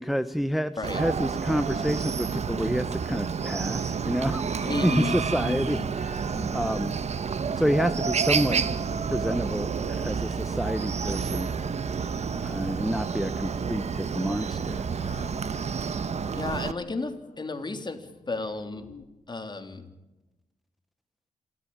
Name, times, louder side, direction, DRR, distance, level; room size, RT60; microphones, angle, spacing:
voice 1, 0.0-6.9 7.6-8.6 9.1-11.5 12.4-14.9, equal, ahead, 11 dB, 0.8 m, -29 dB
Chicken rooster, 0.8-16.7, right 6 dB, 55° right, 1.1 m, -29 dB
sound 1, 4.5-5.4 6.0-7.1 8.3-9.3 10.7-11.6, right 1 dB, 30° right, 7.6 m, -43 dB
voice 2, 4.7-5.2 5.5-5.9 16.3-18.9 19.3-19.9, left 3 dB, 35° left, 7 dB, 3.1 m, -33 dB
sound 2, 15.0-20.0, left 6 dB, 80° left, 3.2 m, -51 dB
27.5 x 13.5 x 8.8 m, 1.0 s
cardioid pair, 80°, 13 cm